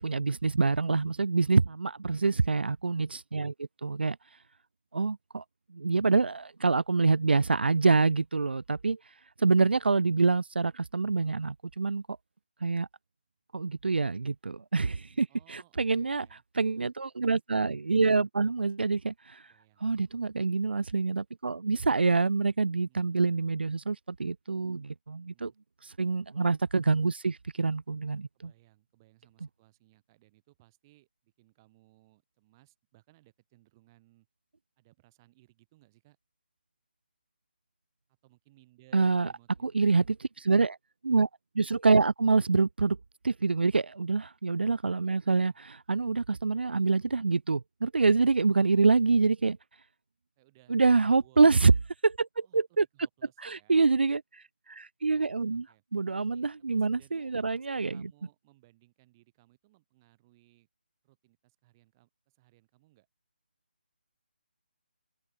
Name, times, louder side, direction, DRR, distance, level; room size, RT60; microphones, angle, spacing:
voice 1, 0.0-4.2 4.9-5.4 5.7-9.0 9.4-12.0 12.6-12.9 13.5-16.3 16.5-19.4 19.8-25.5 25.8-28.5 38.9-39.3 39.7-40.0 40.5-40.8 41.0-41.3 41.5-43.0 43.2-49.6 50.7-51.7 52.0-52.8 53.4-55.7 55.9-58.0, right 4 dB, 85° right, 0.6 m, -26 dB
voice 2, 1.4-1.8 14.9-16.4 19.4-19.9 22.8-23.2 25.1-25.6 28.3-34.3 34.8-36.2 38.2-40.1 45.4-45.6 48.5-48.9 50.4-51.8 52.4-53.8 55.5-55.8 56.3-60.7 61.0-63.1, right 18 dB, 20° right, 5.9 m, -63 dB
open air
hypercardioid pair, 160°, 5 cm